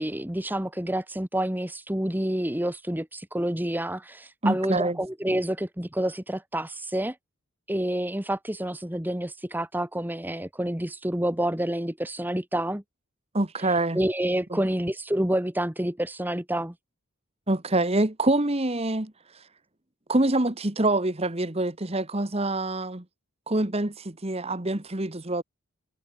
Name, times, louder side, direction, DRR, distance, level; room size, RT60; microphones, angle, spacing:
voice 1, 0.0-7.2 7.7-12.8 13.9-16.7, right 1 dB, 10° right, 1.1 m, -28 dB
voice 2, 4.4-5.0 13.3-14.0 14.5-14.6 17.5-19.1 20.1-23.0 23.5-25.4, right 2 dB, 25° right, 1.4 m, -25 dB
head